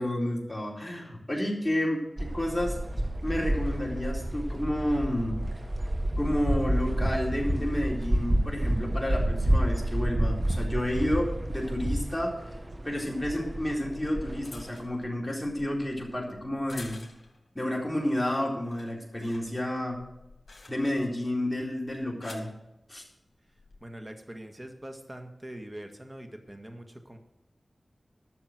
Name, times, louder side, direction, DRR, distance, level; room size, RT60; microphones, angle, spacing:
voice 1, 0.0-2.8 3.2-5.4 6.2-12.6 12.8-17.0 17.5-20.0 20.7-22.5 22.9-23.0, left 1 dB, 10° left, -2 dB, 3.9 m, -30 dB
sound 1, 2.2-14.8, right 1 dB, 40° right, 1.6 m, -29 dB
sound 2, 13.8-17.5 17.9-18.3 18.5-21.1 21.9-22.6 23.5-23.8, left 3 dB, 60° left, 2.9 m, -49 dB
voice 2, 23.8-27.2, right 1 dB, 25° right, 5 dB, 1.8 m, -43 dB
12.5 x 6.8 x 7.7 m, 0.90 s
wide cardioid pair, 60°, 0 cm